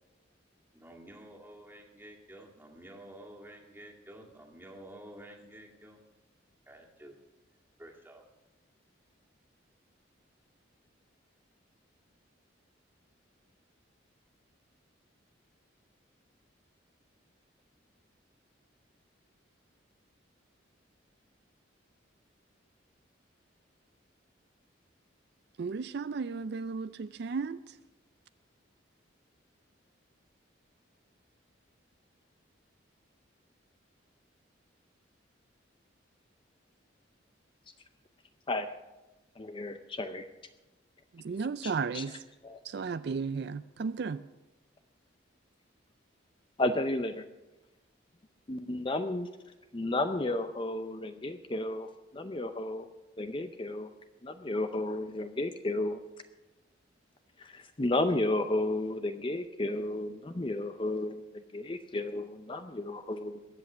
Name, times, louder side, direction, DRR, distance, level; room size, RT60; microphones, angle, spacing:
voice 1, 0.7-6.0 6.7-7.2 7.8-8.2, right 1 dB, 10° right, 2.1 m, -50 dB
voice 2, 25.6-27.8 41.1-42.2 42.6-44.3, right 5 dB, 55° right, 0.4 m, -34 dB
voice 3, 39.4-40.3 41.6-42.0 42.4-42.6 46.6-47.2 48.5-49.3 49.7-52.9 53.2-53.9 54.2-56.0 57.4-63.5, left 2 dB, 25° left, 0.5 m, -33 dB
21.5 x 8.2 x 6.2 m
head